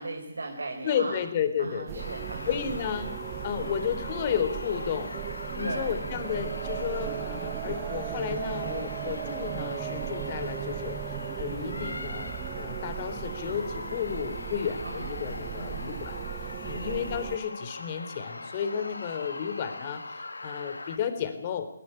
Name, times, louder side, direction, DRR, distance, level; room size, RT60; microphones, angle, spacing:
voice 1, 0.0-1.2 1.6-2.6 5.6-6.1 14.8-15.2 15.6-15.9 16.7-17.0, right 2 dB, 80° right, 2 dB, 4.5 m, -37 dB
voice 2, 0.8-2.1 2.5-3.1 3.4-5.1 5.5-16.2 16.6-21.7, left 8 dB, 35° left, 9 dB, 3.7 m, -32 dB
sound 1, 1.9-17.4, right 13 dB, 25° right, 1.4 m, -37 dB
sound 2, 2.0-21.0, left 2 dB, 85° left, 2.1 m, -40 dB
19.5 x 19.0 x 9.9 m, 0.67 s
figure-of-eight pair, 150°, 0 cm